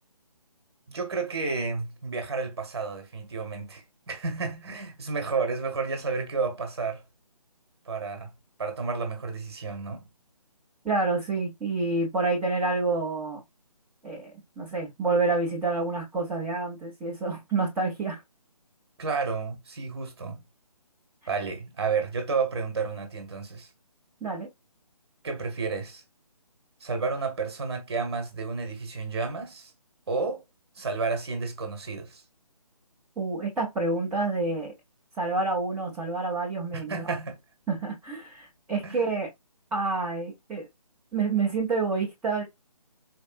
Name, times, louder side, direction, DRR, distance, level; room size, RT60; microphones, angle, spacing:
voice 1, 0.9-7.0 7.9-8.3 8.6-10.1 19.0-20.4 21.3-23.7 25.2-26.0 26.8-29.7 30.1-30.4 30.8-32.2 36.7-37.4 38.8-39.1, right 4 dB, 40° right, 1.2 m, -31 dB
voice 2, 10.8-13.4 14.0-14.3 14.6-18.2 24.2-24.5 33.2-34.7 35.2-37.2 37.7-39.3 39.7-40.7 41.1-42.4, right 3 dB, ahead, 0.6 m, -28 dB
4.4 x 2.5 x 2.5 m
figure-of-eight pair, 150°, 20 cm